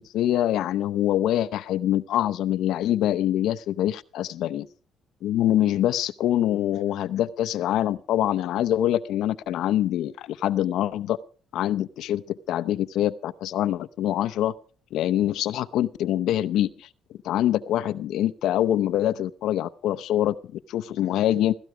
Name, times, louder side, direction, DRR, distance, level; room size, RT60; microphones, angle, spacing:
voice 1, 0.0-4.7 5.2-11.2 11.5-14.5 14.9-16.9 17.2-21.6, left 12 dB, 75° left, 14 dB, 0.7 m, -25 dB
16.5 x 16.0 x 4.9 m, 0.42 s
cardioid pair, 115°, 0 cm